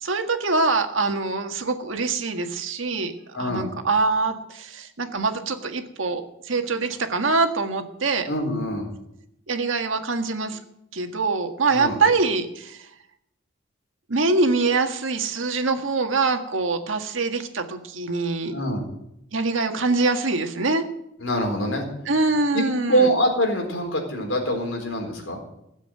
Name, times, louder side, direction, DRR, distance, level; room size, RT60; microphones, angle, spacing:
voice 1, 0.0-3.1 3.4-8.3 9.5-10.6 10.9-12.9 14.1-18.5 19.3-20.8 22.0-23.1, right 3 dB, 85° right, 6 dB, 1.7 m, -24 dB
voice 2, 3.3-3.7 8.3-8.9 11.7-12.0 18.5-18.8 21.2-21.8 22.5-25.4, equal, 75° left, 2 dB, 4.2 m, -24 dB
16.5 x 7.5 x 8.9 m, 0.80 s
head